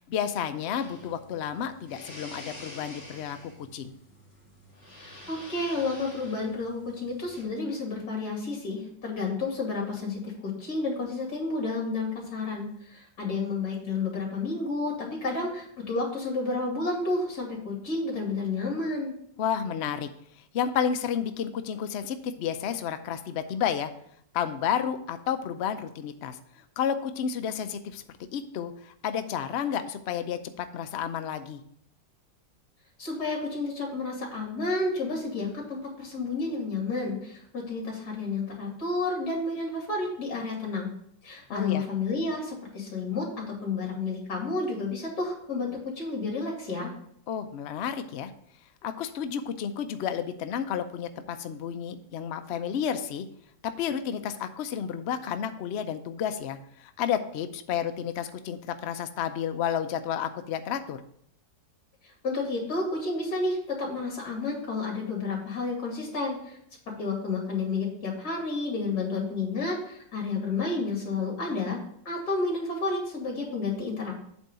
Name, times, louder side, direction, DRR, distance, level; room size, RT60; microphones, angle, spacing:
voice 1, 0.0-3.9 19.4-20.1 20.4-23.9 24.3-28.0 28.3-31.6 41.5-41.8 47.3-48.3 48.8-53.3 53.6-61.0, left 8 dB, 80° left, 8 dB, 0.6 m, -31 dB
sound 1, 0.7-7.4, left 1 dB, 35° left, 2.5 m, -48 dB
voice 2, 5.0-19.1 33.0-40.9 41.2-46.9 62.0-66.6 67.0-71.8 72.0-74.2, left 3 dB, 60° left, 0 dB, 2.9 m, -31 dB
8.2 x 3.6 x 6.7 m, 0.69 s
omnidirectional pair, 1.9 m